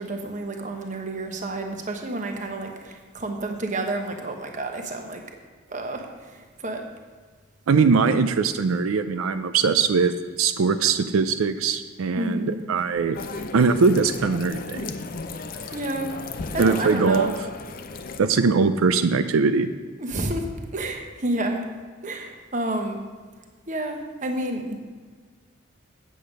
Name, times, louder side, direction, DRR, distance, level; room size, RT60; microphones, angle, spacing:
voice 1, 0.0-5.2 5.7-6.8 12.1-12.6 15.7-16.1 16.5-17.3 20.0-21.6 22.0-23.0 23.7-24.8, right 2 dB, 35° right, 3 dB, 1.0 m, -30 dB
voice 2, 7.7-13.2 13.5-14.8 16.6-17.3 18.2-19.7, right 5 dB, 85° right, 10 dB, 0.4 m, -21 dB
sound 1, 13.1-18.2, left 3 dB, 45° left, 0.5 m, -35 dB
8.5 x 7.7 x 5.1 m, 1.5 s
head